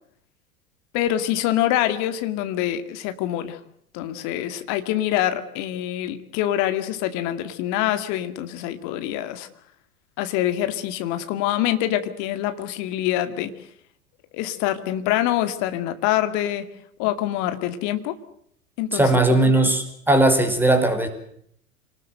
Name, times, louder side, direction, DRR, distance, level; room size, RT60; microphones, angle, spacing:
voice 1, 0.9-3.6 3.9-9.5 10.2-13.5 14.3-16.7 17.0-18.1 18.8-19.2 19.5-19.7, left 12 dB, 45° left, 10 dB, 2.3 m, -25 dB
voice 2, 18.9-21.1, right 2 dB, 5° right, 6 dB, 5.1 m, -18 dB
27.0 x 19.5 x 7.9 m, 0.68 s
figure-of-eight pair, 85°, 40 cm